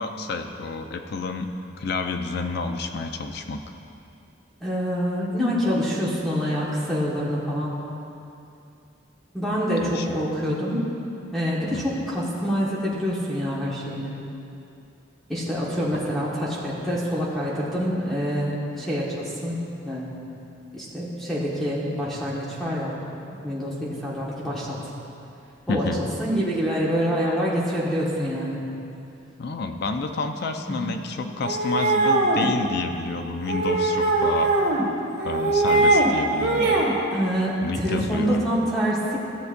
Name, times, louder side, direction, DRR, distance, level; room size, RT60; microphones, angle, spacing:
voice 1, 0.0-1.5 1.8-3.6 9.8-10.2 11.7-11.8 15.9-16.0 25.7-26.0 29.4-34.5 35.2-36.8 37.6-38.4, left 3 dB, 55° left, 6 dB, 0.4 m, -29 dB
voice 2, 4.6-7.7 9.3-10.8 11.3-14.1 15.3-20.2 20.7-22.9 23.4-24.8 25.7-25.9 26.2-28.6 30.7-30.9 37.1-39.2, equal, ahead, -7 dB, 1.4 m, -26 dB
sound 1, 31.4-32.5 33.5-34.8 35.2-36.1 36.4-36.9, right 2 dB, 75° right, 1.7 m, -21 dB
14.5 x 7.8 x 2.6 m, 2.6 s
head